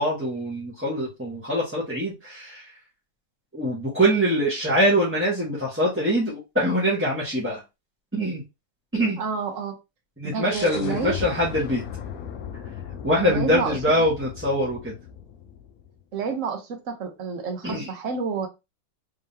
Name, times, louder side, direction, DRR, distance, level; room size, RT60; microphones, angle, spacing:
voice 1, 0.0-2.7 3.5-7.6 8.1-8.4 8.9-9.2 10.2-11.8 13.0-14.9 17.6-17.9, equal, 10° right, 0.9 m, -23 dB
voice 2, 9.2-9.7 10.2-11.3 13.2-13.8 16.1-18.5, right 5 dB, 50° right, 1.1 m, -29 dB
sound 1, 10.5-16.0, left 8 dB, 65° left, 0.9 m, -37 dB
3.6 x 3.5 x 2.7 m
omnidirectional pair, 2.0 m